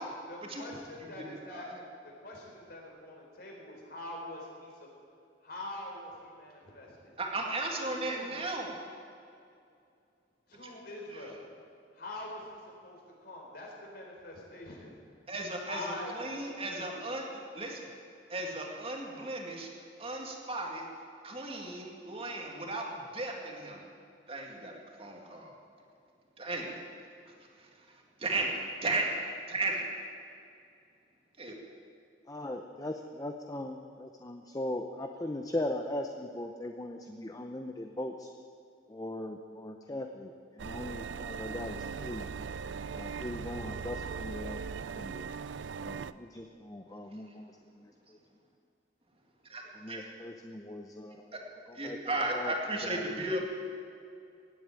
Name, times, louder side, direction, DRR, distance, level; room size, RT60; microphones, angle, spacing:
voice 1, 0.3-1.7 2.2-4.9 5.4-7.1 8.0-8.4 10.5-11.4 11.9-15.0 15.7-17.0, left 1 dB, 60° left, -1 dB, 4.2 m, -44 dB
voice 2, 1.2-1.8 7.2-8.8 10.6-10.7 15.3-17.9 18.3-19.7 20.0-20.8 21.2-23.8 24.3-25.5 26.4-26.8 28.2-29.1 29.5-29.9 31.4-31.6 49.5-50.0 51.3-51.4 51.7-53.4, right 2 dB, 30° right, 1 dB, 2.1 m, -35 dB
voice 3, 32.3-38.3 38.9-42.3 42.8-44.6 44.9-45.3 45.8-48.2 49.7-51.3 51.7-52.0 52.3-52.5 52.8-53.2, left 1 dB, 20° left, 4 dB, 0.7 m, -39 dB
sound 1, 40.6-46.1, right 5 dB, 85° right, 0.5 m, -39 dB
17.0 x 8.6 x 9.1 m, 2.4 s
head